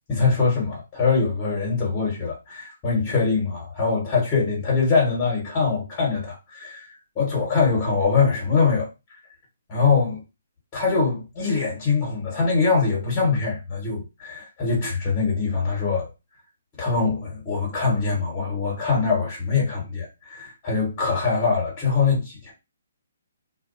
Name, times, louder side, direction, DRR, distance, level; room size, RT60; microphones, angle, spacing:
voice 1, 0.1-8.9 9.7-10.2 10.7-16.1 16.8-22.5, left 4 dB, 25° left, 1.1 m, -23 dB
2.3 x 2.2 x 2.5 m
hypercardioid pair, 140°, 0 cm